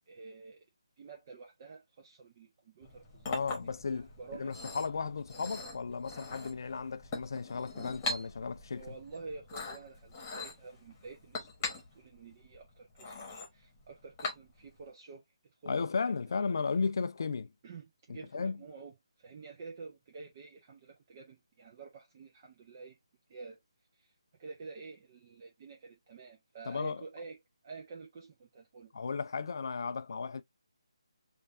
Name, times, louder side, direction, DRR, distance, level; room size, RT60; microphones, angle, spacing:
voice 1, 0.1-0.7 1.0-3.6 4.2-4.5 8.7-15.2 15.6-15.9 16.3-16.4 17.6-23.0 23.3-23.6 23.9-24.1 24.4-28.9, right 4 dB, 25° right, 0.7 m, -49 dB
Chink clink, 2.8-14.8, left 2 dB, 20° left, 1.3 m, -42 dB
voice 2, 3.3-4.1 4.4-8.9 15.7-17.5 18.1-18.6 26.7-27.0 28.9-30.4, left 5 dB, 45° left, 0.4 m, -35 dB
5.1 x 2.6 x 2.6 m
figure-of-eight pair, 150°, 3 cm